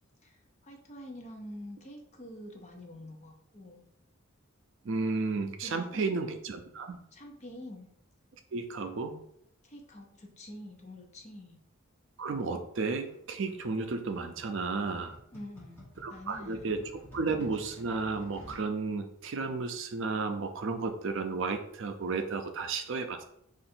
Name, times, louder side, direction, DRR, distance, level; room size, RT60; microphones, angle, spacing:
voice 1, 0.6-3.9 5.6-6.3 7.1-7.9 8.9-9.0 9.6-11.6 15.3-16.8, left 1 dB, 30° left, 2 dB, 0.6 m, -47 dB
voice 2, 4.8-7.0 8.5-9.2 12.2-15.2 16.0-16.8 17.1-23.2, right 4 dB, 60° right, 6 dB, 0.4 m, -33 dB
sound 1, 13.0-18.7, left 1 dB, 10° left, 1.2 m, -53 dB
3.7 x 2.5 x 4.3 m, 0.71 s
head